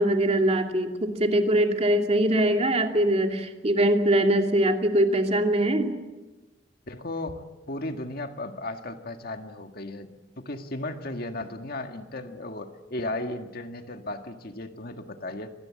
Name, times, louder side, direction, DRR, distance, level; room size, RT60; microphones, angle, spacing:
voice 1, 0.0-5.9, right 1 dB, 35° right, 4 dB, 2.5 m, -22 dB
voice 2, 6.9-10.1 10.4-15.5, left 2 dB, 55° left, 6 dB, 1.8 m, -35 dB
24.5 x 19.5 x 8.4 m, 1.1 s
head